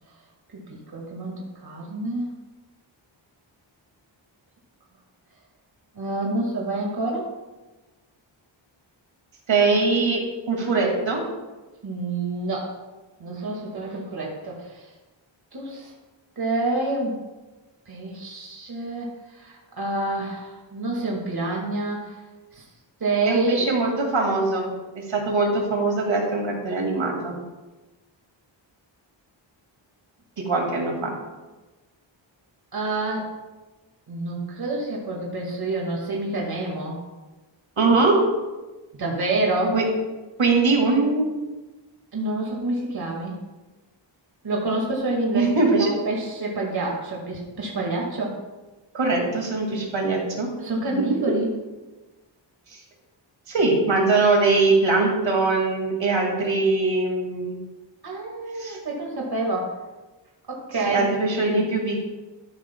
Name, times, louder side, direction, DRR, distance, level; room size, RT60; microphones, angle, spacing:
voice 1, 0.7-2.3 6.0-7.3 11.8-12.7 13.2-14.9 15.5-15.9 16.4-17.1 17.9-22.2 22.5-22.6 23.0-23.7 32.7-33.3 34.1-37.0 38.9-39.7 42.1-43.3 44.4-48.4 50.6-51.5 58.0-59.7 60.5-61.0 61.5-61.6, right 2 dB, 50° right, -2 dB, 2.1 m, -28 dB
voice 2, 9.5-10.2 10.5-11.2 23.3-24.7 24.9-27.3 30.4-31.1 37.8-38.2 39.7-39.8 40.4-41.3 45.3-45.9 48.9-50.5 53.5-57.5 58.6-58.8 60.8-62.0, right 3 dB, 70° right, 0 dB, 2.4 m, -21 dB
13.0 x 11.5 x 2.3 m, 1.2 s
wide cardioid pair, 135°, 47 cm